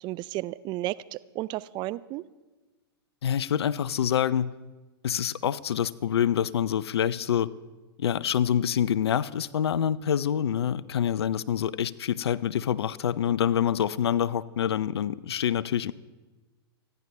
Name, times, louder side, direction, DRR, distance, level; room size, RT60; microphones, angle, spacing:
voice 1, 0.0-2.2, right 17 dB, 35° right, 17 dB, 0.4 m, -33 dB
voice 2, 3.2-4.5 5.0-7.5 8.0-15.9, left 9 dB, 75° left, 20 dB, 0.5 m, -26 dB
28.0 x 10.5 x 3.3 m, 1.2 s
hypercardioid pair, 110°, 14 cm